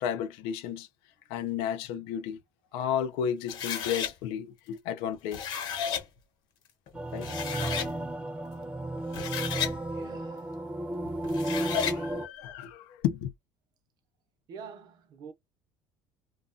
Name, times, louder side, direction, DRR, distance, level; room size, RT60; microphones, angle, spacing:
voice 1, 0.0-0.9 1.3-2.4 2.7-5.5 7.1-7.3 11.4-11.5 11.9-13.3, left 9 dB, 85° left, 0.6 m, -32 dB
sound 1, 3.5-4.1 5.1-6.0 6.9-7.0 7.2-7.9 9.0-9.8 11.2-12.0, left 8 dB, 55° left, 0.9 m, -33 dB
sound 2, 6.9-12.3, right 1 dB, 15° right, 0.6 m, -33 dB
voice 2, 9.9-10.8 14.5-15.3, right 6 dB, 55° right, 0.8 m, -47 dB
2.4 x 2.3 x 2.5 m
cardioid pair, 140°, 8 cm